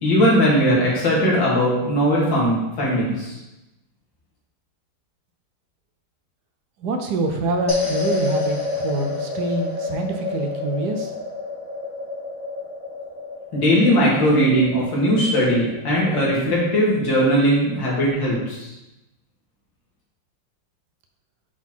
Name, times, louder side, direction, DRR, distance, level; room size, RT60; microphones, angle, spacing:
voice 1, 0.0-3.3 13.5-18.7, equal, 85° left, -5 dB, 2.7 m, -19 dB
voice 2, 6.8-11.1, right 2 dB, 65° right, 4 dB, 1.2 m, -26 dB
sound 1, 7.7-18.1, left 3 dB, 20° left, 1.1 m, -29 dB
7.0 x 4.1 x 4.4 m, 0.97 s
omnidirectional pair, 2.0 m